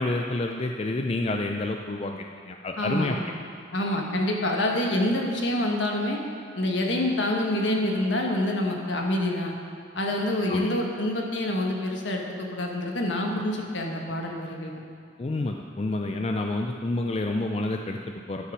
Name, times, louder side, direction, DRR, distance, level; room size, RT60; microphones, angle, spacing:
voice 1, 0.0-3.2 10.5-10.7 15.2-18.5, left 2 dB, 30° left, 3 dB, 0.4 m, -29 dB
voice 2, 2.8-3.2 3.7-6.2 6.5-9.6 9.9-14.8, left 1 dB, 70° left, 1 dB, 1.3 m, -27 dB
11.5 x 5.6 x 6.2 m, 2.3 s
head